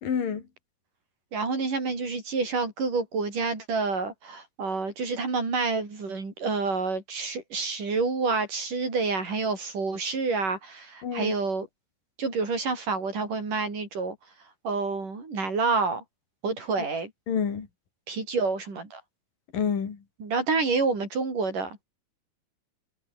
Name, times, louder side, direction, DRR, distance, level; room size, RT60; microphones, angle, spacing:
voice 1, 0.0-0.4 11.0-11.3 17.3-17.7 19.5-20.0, left 7 dB, 90° left, 5.1 m, -28 dB
voice 2, 1.3-11.7 12.2-14.2 14.6-16.0 16.4-17.1 18.1-19.0 20.2-21.8, right 4 dB, 75° right, 8.3 m, -28 dB
omnidirectional pair, 3.8 m